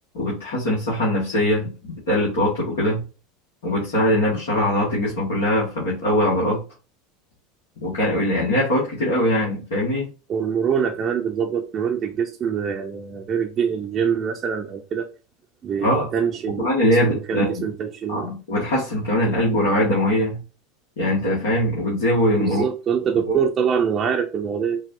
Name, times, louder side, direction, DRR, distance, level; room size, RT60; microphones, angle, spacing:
voice 1, 0.1-3.0 3.6-6.6 7.8-10.1 15.8-16.1 16.6-17.6 18.1-20.4 21.0-22.6 23.3-23.4, left 1 dB, 70° left, 1.6 m, -21 dB
voice 2, 10.3-15.1 15.6-18.3 22.4-24.8, right 7 dB, 35° right, 0.6 m, -24 dB
5.8 x 2.4 x 2.6 m
hypercardioid pair, 80°, 0 cm